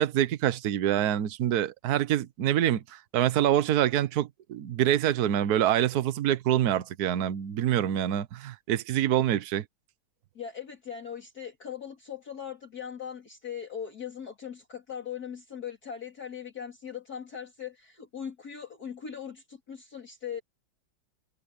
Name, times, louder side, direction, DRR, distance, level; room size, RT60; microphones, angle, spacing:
voice 1, 0.0-9.6, right 11 dB, 55° right, 1.3 m, -26 dB
voice 2, 10.3-20.4, left 8 dB, 45° left, 3.3 m, -39 dB
omnidirectional pair, 2.3 m